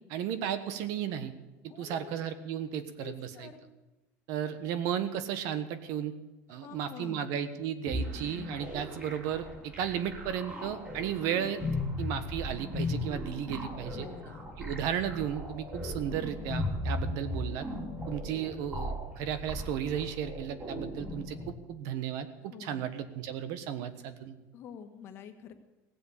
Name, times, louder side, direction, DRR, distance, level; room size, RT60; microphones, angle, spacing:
voice 1, 0.1-1.3 1.8-3.5 4.3-6.1 6.5-11.6 12.0-14.1 14.6-17.6 18.1-24.3, right 9 dB, 65° right, 11 dB, 1.3 m, -34 dB
voice 2, 1.7-2.2 3.0-3.6 6.5-7.4 11.5-11.8 13.9-14.5 16.0-16.1 18.3-18.5 22.5-22.9 24.5-25.5, left 8 dB, 40° left, 6 dB, 1.5 m, -48 dB
sound 1, 7.9-21.5, left 1 dB, 25° right, 3.6 m, -37 dB
17.0 x 7.8 x 8.6 m, 1.1 s
cardioid pair, 155°, 6 cm